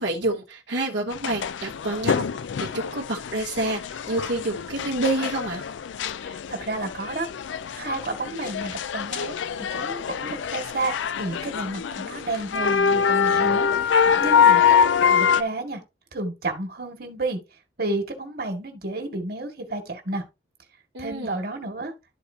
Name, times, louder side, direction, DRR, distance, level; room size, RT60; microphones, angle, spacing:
voice 1, 0.0-2.3 2.6-5.6 20.9-21.4, right 2 dB, 75° right, 1.1 m, -28 dB
sound 1, 1.1-15.4, left 7 dB, 90° left, 0.4 m, -24 dB
voice 2, 6.2-7.3 7.8-15.8 16.1-17.4 17.8-20.2 21.0-21.9, right 2 dB, 55° right, 1.8 m, -31 dB
12.0 x 4.3 x 2.7 m
head